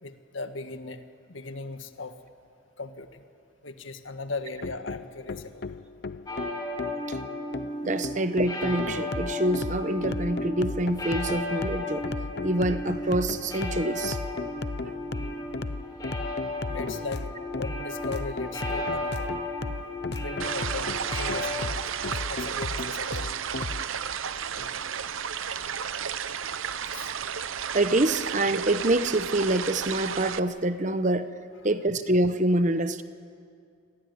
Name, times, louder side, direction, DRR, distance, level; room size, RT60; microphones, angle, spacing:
voice 1, 0.0-2.2 2.8-3.2 3.6-5.6 16.7-17.2 17.5-19.3 20.1-21.8 22.3-23.2 24.5-24.7 26.9-27.1, left 3 dB, 75° left, 8 dB, 1.7 m, -38 dB
sound 1, 4.6-23.8, left 3 dB, 55° left, 0.7 m, -35 dB
sound 2, 6.3-21.5, left 1 dB, 20° left, 4.2 m, -35 dB
voice 2, 7.8-12.0 12.4-14.2 27.7-31.3 31.6-33.0, right 1 dB, 40° right, 11 dB, 1.0 m, -26 dB
sound 3, 20.4-30.4, right 7 dB, 85° right, 0.8 m, -33 dB
27.5 x 21.5 x 9.6 m, 2.3 s
head